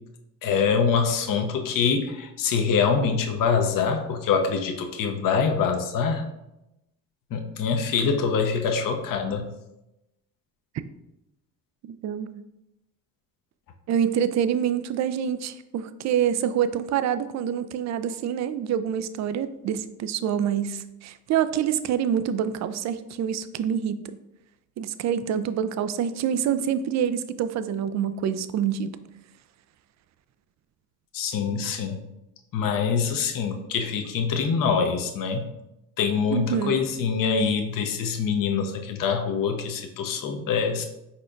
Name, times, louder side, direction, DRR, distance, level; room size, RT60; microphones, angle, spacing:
voice 1, 0.4-6.2 7.3-9.4 31.1-32.0 32.5-35.4 36.0-40.8, left 6 dB, 50° left, 4 dB, 0.7 m, -24 dB
voice 2, 11.9-12.4 13.9-24.2 24.8-29.0 36.3-36.8, right 8 dB, 45° right, 12 dB, 0.4 m, -26 dB
4.4 x 4.2 x 2.5 m, 0.89 s
hypercardioid pair, 60°, 42 cm